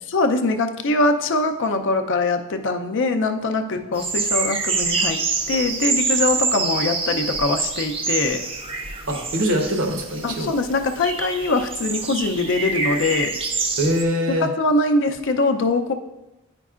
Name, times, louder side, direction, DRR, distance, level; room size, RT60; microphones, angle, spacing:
voice 1, 0.1-5.2 5.5-8.4 10.2-13.4 14.4-15.9, left 2 dB, 60° left, 7 dB, 0.5 m, -22 dB
sound 1, 4.0-14.0, right 4 dB, 25° right, 0.5 m, -26 dB
voice 2, 9.1-10.5 13.8-14.5, equal, 70° right, 3 dB, 1.0 m, -23 dB
9.1 x 5.2 x 2.4 m, 0.97 s
head